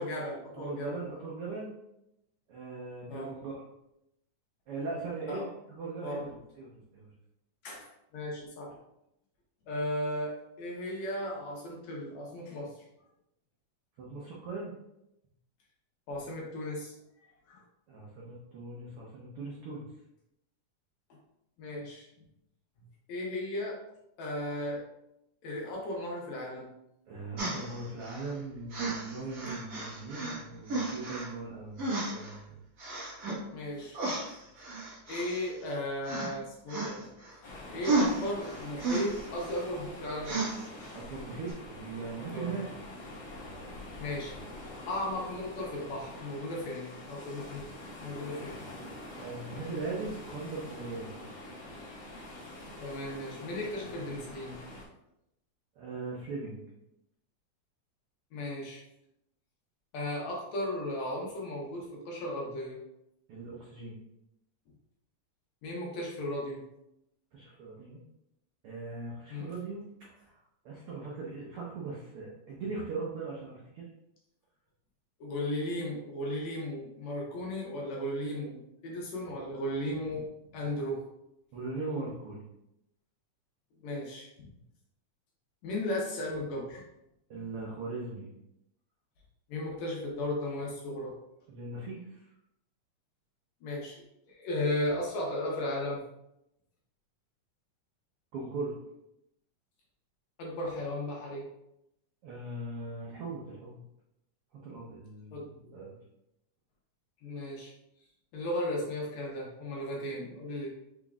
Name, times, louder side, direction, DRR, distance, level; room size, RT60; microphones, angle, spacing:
voice 1, 0.0-1.0 3.1-3.3 5.3-5.5 6.0-6.3 7.6-7.9 8.1-8.8 9.7-12.8 16.1-17.6 21.6-22.1 23.1-23.8 24.2-24.8 25.4-26.7 33.5-34.0 34.3-34.4 35.1-37.4 37.7-40.4 41.0-41.1 42.3-42.6 44.0-44.3 44.9-47.7 48.0-48.6 49.0-49.2 52.8-54.6 58.3-58.8 59.9-62.8 65.6-66.6 69.3-69.5 75.2-81.0 83.8-84.5 85.6-86.8 89.5-91.1 93.6-96.1 100.4-101.4 105.3-105.4 107.2-107.7 108.3-110.7, left 1 dB, 70° left, -3 dB, 2.0 m, -36 dB
voice 2, 0.6-1.7 2.5-3.5 4.7-6.3 6.6-7.1 14.0-14.7 17.9-19.9 27.1-32.6 40.9-42.7 49.2-51.2 55.8-56.6 63.3-64.0 67.3-68.0 68.6-69.8 70.2-70.3 70.6-73.9 81.5-82.5 87.3-88.3 91.5-92.2 98.3-98.7 102.2-103.8 104.6-106.0, right 3 dB, 85° right, -4 dB, 1.2 m, -39 dB
sound 1, 27.4-28.3 28.7-30.4 30.7-31.3 31.8-32.4 32.8-33.4 33.9-35.7 36.0-36.3 36.7-37.4 37.8-39.6 40.2-40.9 41.5-41.6, right 3 dB, 60° right, 0.9 m, -33 dB
sound 2, 37.4-54.8, left 1 dB, 50° left, 1.4 m, -45 dB
5.9 x 3.6 x 2.3 m, 0.83 s
omnidirectional pair, 3.7 m